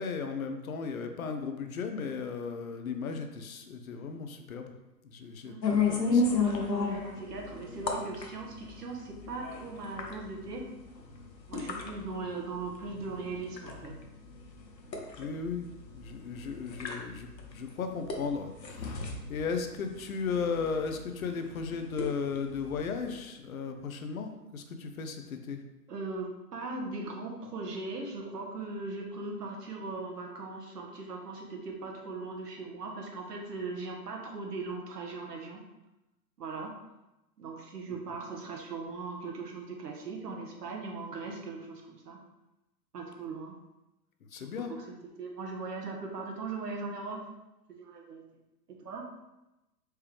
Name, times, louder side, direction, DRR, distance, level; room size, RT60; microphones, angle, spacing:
voice 1, 0.0-4.7 5.1-6.2 15.2-15.7 15.9-17.3 17.5-19.0 19.3-25.6 44.3-44.7, left 5 dB, 55° left, 6 dB, 0.6 m, -35 dB
voice 2, 5.4-10.7 11.5-13.9 25.9-35.6 36.4-36.7 37.4-42.2 42.9-43.5 44.3-44.4 44.7-44.8 45.2-47.3 47.7-48.2 48.8-49.1, right 3 dB, 70° right, 1 dB, 1.1 m, -39 dB
sound 1, 5.6-23.2, left 4 dB, 85° left, 0.9 m, -35 dB
4.5 x 3.3 x 3.2 m, 0.96 s
figure-of-eight pair, 120°, 49 cm